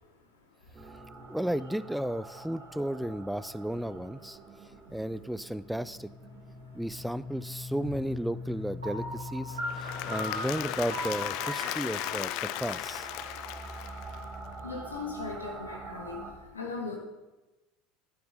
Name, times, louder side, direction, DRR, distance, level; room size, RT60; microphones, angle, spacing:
voice 1, 0.3-0.8 4.6-5.0 6.6-6.8 9.6-10.1 13.2-17.0, left 4 dB, 85° left, 1 dB, 1.7 m, -42 dB
sound 1, 0.7-16.3, left 1 dB, 35° right, 1.8 m, -44 dB
voice 2, 1.3-4.4 4.9-6.1 6.7-13.1, equal, ahead, 16 dB, 0.4 m, -34 dB
Piano, 8.8-13.7, equal, 85° right, 2.7 m, -39 dB
Applause / Crowd, 9.5-14.5, left 15 dB, 60° left, 0.4 m, -36 dB
11.5 x 8.6 x 4.0 m, 1.1 s
figure-of-eight pair, 70°, 0 cm